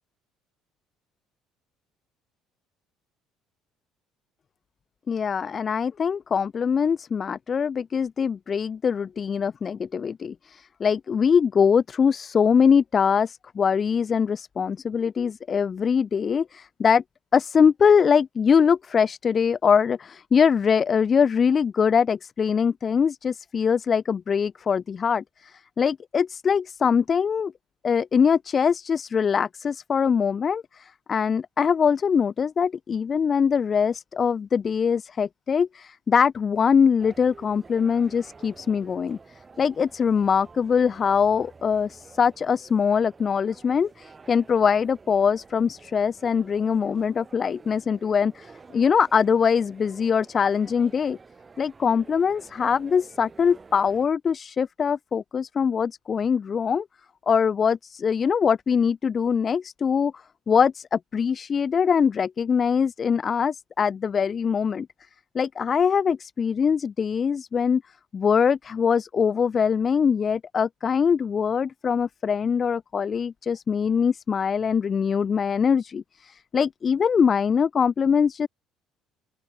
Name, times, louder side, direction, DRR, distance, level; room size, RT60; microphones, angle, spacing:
voice 1, 5.1-17.0 17.3-27.5 27.8-39.2 39.6-51.2 51.6-56.8 57.3-60.1 60.5-64.9 65.3-67.8 68.1-78.5, left 6 dB, 30° left, 1.0 m, -23 dB
sound 1, 37.0-54.1, right 4 dB, 20° right, 3.7 m, -50 dB
open air
cardioid pair, 160°, 0 cm